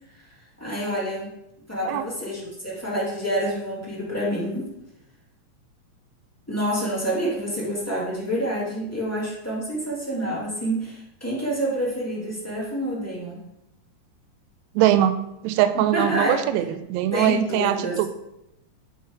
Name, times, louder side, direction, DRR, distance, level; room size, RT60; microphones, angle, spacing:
voice 1, 0.6-1.3 1.7-4.7 6.5-13.4 15.7-16.4 17.1-18.0, right 1 dB, 10° left, -7 dB, 0.8 m, -27 dB
voice 2, 14.7-15.1 15.4-18.1, right 12 dB, 80° right, 11 dB, 1.6 m, -22 dB
9.1 x 3.2 x 4.6 m, 0.85 s
omnidirectional pair, 3.6 m